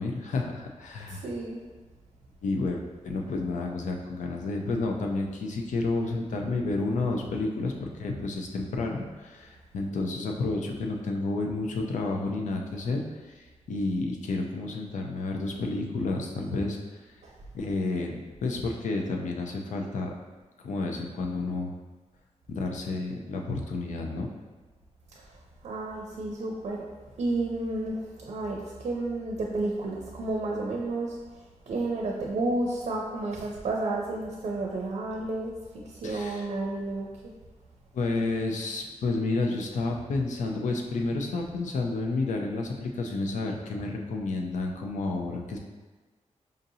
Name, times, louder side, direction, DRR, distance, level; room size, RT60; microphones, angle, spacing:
voice 1, 0.0-1.3 2.4-17.0 17.5-20.1 20.6-21.7 22.5-24.3 36.0-36.5 37.9-45.6, left 3 dB, 90° left, 1 dB, 0.5 m, -30 dB
voice 2, 1.1-1.6 17.2-17.3 25.6-26.9 27.2-31.2 31.7-37.3, right 2 dB, 60° right, -1 dB, 0.5 m, -31 dB
5.1 x 2.6 x 2.7 m, 1.3 s
wide cardioid pair, 175°, 12 cm